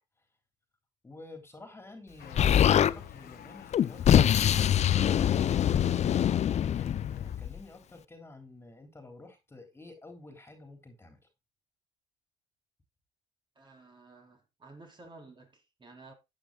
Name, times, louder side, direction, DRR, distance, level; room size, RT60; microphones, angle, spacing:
voice 1, 1.0-11.2, left 2 dB, 15° left, 3.3 m, -50 dB
sound 1, 2.2-7.4, left 9 dB, 60° left, 1.5 m, -48 dB
Explosion, 2.4-2.9 3.7-7.6, left 10 dB, 40° left, 0.5 m, -24 dB
voice 2, 13.6-16.1, right 3 dB, 25° right, 3.8 m, -53 dB
14.0 x 9.0 x 2.3 m
cardioid pair, 110°, 17 cm